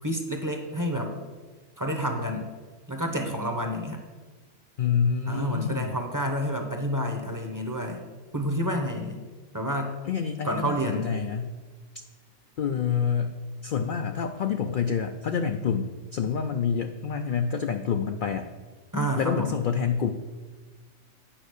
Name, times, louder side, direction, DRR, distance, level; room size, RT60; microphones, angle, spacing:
voice 1, 0.0-1.1 1.8-2.5 2.9-4.0 5.3-8.1 8.3-9.2 9.5-9.9 10.4-11.1 18.9-19.6, equal, 15° right, 4 dB, 0.8 m, -29 dB
voice 2, 4.8-6.0 10.0-11.6 12.6-18.5 19.2-20.1, left 7 dB, 65° left, 6 dB, 0.5 m, -27 dB
9.0 x 5.3 x 6.5 m, 1.3 s
omnidirectional pair, 1.4 m